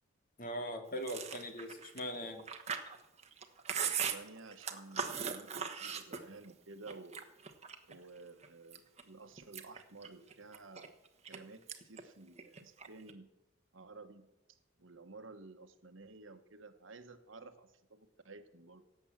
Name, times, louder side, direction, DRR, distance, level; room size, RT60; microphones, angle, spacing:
voice 1, 0.4-2.4, equal, 45° left, 4 dB, 2.2 m, -40 dB
Chewing mastication, 1.0-6.5 6.9-7.9 8.4-9.0 9.4-11.4 11.7-12.0 12.3-13.1, right 7 dB, 30° right, 1.2 m, -39 dB
voice 2, 3.7-7.2 7.8-11.0 11.2-13.3 13.7-18.8, right 3 dB, 70° right, 9 dB, 1.2 m, -53 dB
17.5 x 7.9 x 7.5 m, 0.89 s
head